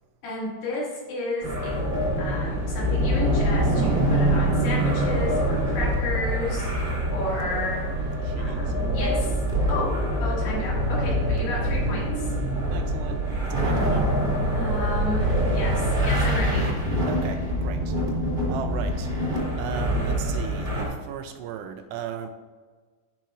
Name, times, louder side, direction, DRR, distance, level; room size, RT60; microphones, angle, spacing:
voice 1, 0.2-1.8 2.2-7.8 8.4-9.4 9.7-9.9 10.2-12.3 14.5-16.7, left 2 dB, 70° left, -5 dB, 4.2 m, -32 dB
sound 1, 1.4-20.9, right 1 dB, 20° right, 1.3 m, -25 dB
voice 2, 8.2-8.7 12.7-14.1 17.1-18.0 18.5-19.1 19.6-22.3, right 8 dB, 80° right, 7 dB, 2.6 m, -36 dB
15.0 x 5.9 x 2.5 m, 1.4 s
omnidirectional pair, 5.0 m